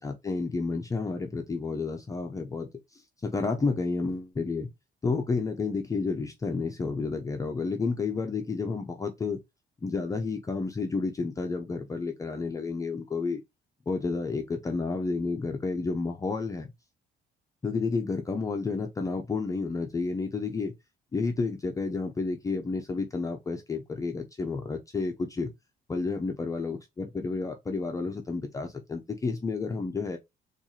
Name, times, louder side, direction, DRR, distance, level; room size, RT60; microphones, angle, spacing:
voice 1, 0.0-4.7 5.0-9.4 9.8-13.4 13.9-16.7 17.6-20.7 21.1-25.5 25.9-30.2, left 4 dB, 20° left, 0.5 m, -31 dB
4.4 x 2.4 x 2.7 m
cardioid pair, 110°, 17 cm